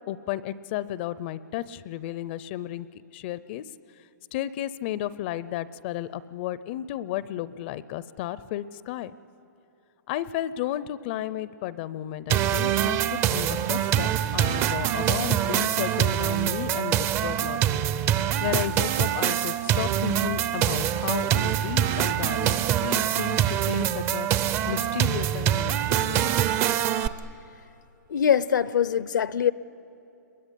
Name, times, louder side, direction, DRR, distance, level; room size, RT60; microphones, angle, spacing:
voice 1, 0.1-2.9 3.1-3.6 4.3-9.2 10.1-17.8 18.4-24.3 24.7-26.3, left 12 dB, 35° left, 17 dB, 0.5 m, -33 dB
sound 1, 12.3-27.1, right 10 dB, 20° right, 0.5 m, -24 dB
voice 2, 28.1-29.5, left 8 dB, 80° left, 17 dB, 0.7 m, -23 dB
26.5 x 21.5 x 9.9 m, 2.8 s
hypercardioid pair, 155°, 10 cm